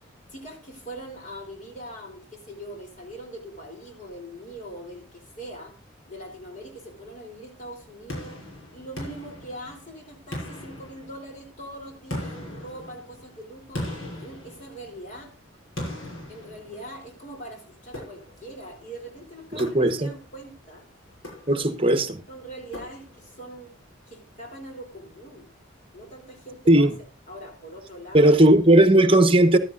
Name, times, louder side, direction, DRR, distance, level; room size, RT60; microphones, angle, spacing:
voice 1, 0.3-5.8 6.1-8.4 8.7-13.8 14.1-15.3 16.3-20.9 21.5-21.7 22.3-23.7 24.1-25.5 25.9-26.9 27.3-28.5, right 1 dB, 40° left, 3.5 m, -42 dB
sound 1, 8.1-9.9 10.3-11.5 12.1-15.1 15.8-17.2 17.9-18.6 19.6-20.3 21.1-21.9 22.7-23.4, left 1 dB, 70° left, 7.0 m, -38 dB
voice 2, 19.5-20.1 21.5-22.2 26.7-26.9 28.1-29.6, right 1 dB, 25° right, 1.1 m, -17 dB
15.5 x 12.5 x 2.6 m
head